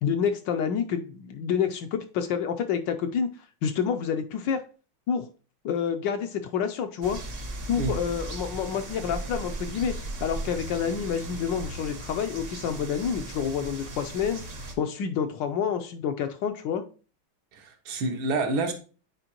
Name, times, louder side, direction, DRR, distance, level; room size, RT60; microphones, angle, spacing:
voice 1, 0.0-3.3 3.6-4.6 5.1-5.3 5.6-7.2 7.7-9.9 10.2-14.4 14.8-16.8, left 7 dB, 75° left, 7 dB, 1.1 m, -28 dB
sound 1, 7.0-14.7, right 2 dB, 45° right, 0.8 m, -37 dB
voice 2, 17.5-18.7, right 3 dB, 75° right, 4 dB, 1.8 m, -28 dB
8.9 x 4.4 x 2.9 m, 0.37 s
omnidirectional pair, 2.3 m